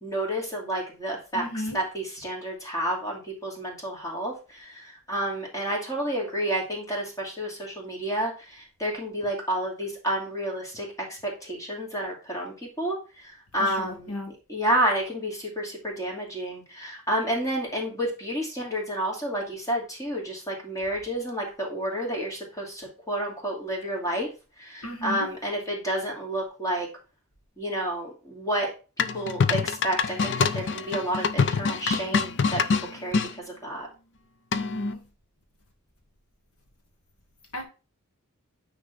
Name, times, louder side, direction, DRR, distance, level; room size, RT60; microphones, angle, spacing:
voice 1, 0.0-13.0 13.5-14.1 14.5-24.3 24.6-26.9 27.6-28.7 29.0-32.6 32.9-33.2 33.5-33.9, right 1 dB, 15° left, 2.5 m, -30 dB
voice 2, 1.3-1.8 13.6-14.3 24.8-25.3 34.5-35.1 37.5-37.6, left 1 dB, 70° left, 1.8 m, -34 dB
sound 1, 29.0-33.3 34.5-34.9, left 5 dB, 55° left, 0.5 m, -25 dB
9.3 x 3.9 x 4.0 m
head